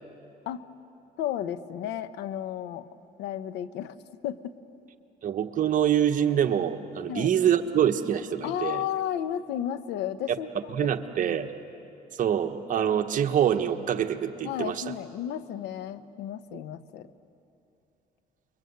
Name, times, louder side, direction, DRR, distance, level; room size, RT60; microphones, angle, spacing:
voice 1, 1.2-2.9 3.2-4.0 4.2-4.5 7.1-7.3 8.4-11.5 14.4-17.1, left 10 dB, 90° left, 13 dB, 1.0 m, -33 dB
voice 2, 5.2-8.8 10.3-10.4 10.7-11.5 12.2-14.8, right 9 dB, 50° right, 6 dB, 1.4 m, -25 dB
28.0 x 23.0 x 8.1 m, 2.8 s
cardioid pair, 110°, 17 cm